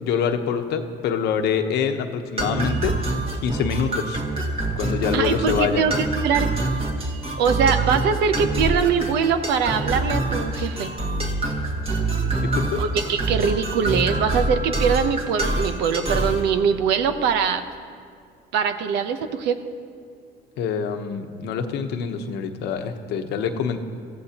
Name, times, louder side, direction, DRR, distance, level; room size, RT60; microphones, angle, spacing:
voice 1, 0.0-2.9 3.4-4.2 4.8-5.8 12.3-12.8 20.6-23.8, left 7 dB, 80° left, 6 dB, 1.0 m, -25 dB
sound 1, 2.4-16.4, right 2 dB, 35° right, 2.0 m, -25 dB
voice 2, 5.1-6.5 7.4-10.9 12.8-17.6 18.5-19.6, right 6 dB, 85° right, 9 dB, 0.9 m, -22 dB
22.5 x 15.0 x 2.9 m, 2.2 s
cardioid pair, 110°, 17 cm